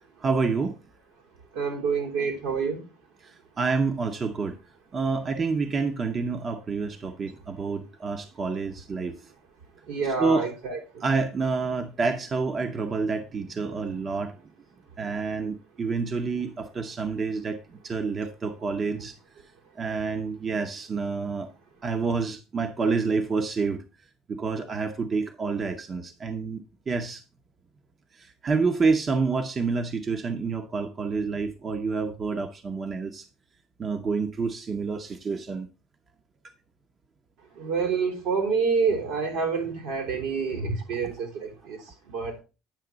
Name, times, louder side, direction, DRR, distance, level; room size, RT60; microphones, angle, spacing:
voice 1, 0.2-0.8 3.2-4.6 4.9-9.2 10.2-10.5 11.0-14.4 15.0-19.1 19.8-21.5 21.8-23.8 24.3-27.2 28.1-33.3 33.8-35.7, right 4 dB, 35° right, 0.8 m, -28 dB
voice 2, 1.5-2.8 9.9-11.0 37.5-42.4, right 5 dB, 80° right, 3.3 m, -28 dB
9.1 x 5.9 x 3.8 m
supercardioid pair, 95°, 0 cm